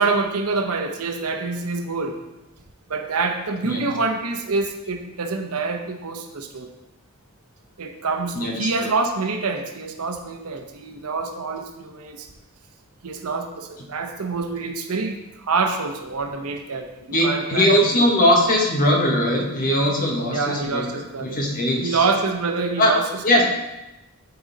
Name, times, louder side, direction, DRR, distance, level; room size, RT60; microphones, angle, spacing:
voice 1, 0.0-2.2 2.9-6.7 7.8-12.3 13.0-18.0 20.3-21.4 21.8-23.1 23.3-23.4, right 4 dB, 85° right, 5 dB, 0.8 m, -26 dB
voice 2, 8.3-8.9 17.1-22.0 22.8-22.9 23.2-23.4, left 1 dB, 40° left, 0 dB, 1.3 m, -20 dB
9.5 x 4.0 x 4.0 m, 0.97 s
head